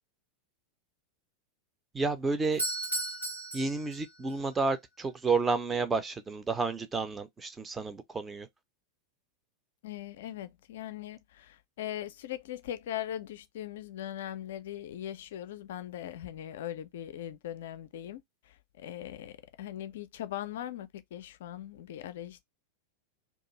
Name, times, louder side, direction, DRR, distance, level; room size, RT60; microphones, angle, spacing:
voice 1, 1.9-2.6 3.5-8.5, right 4 dB, 15° right, 0.5 m, -30 dB
Doorbell, 2.4-4.4, right 1 dB, 90° right, 1.0 m, -35 dB
voice 2, 9.8-22.4, left 11 dB, 55° left, 0.4 m, -40 dB
2.4 x 2.3 x 2.9 m
figure-of-eight pair, 90°, 0 cm